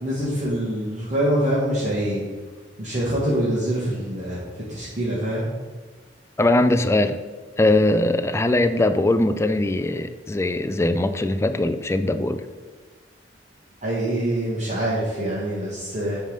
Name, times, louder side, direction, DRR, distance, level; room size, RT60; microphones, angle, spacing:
voice 1, 0.0-2.2 2.8-4.4 4.7-5.4 13.8-16.2, right 1 dB, 40° right, -8 dB, 1.5 m, -25 dB
voice 2, 6.4-7.2 7.6-12.4, left 2 dB, 15° left, 9 dB, 0.3 m, -21 dB
9.0 x 3.4 x 5.2 m, 1.4 s
head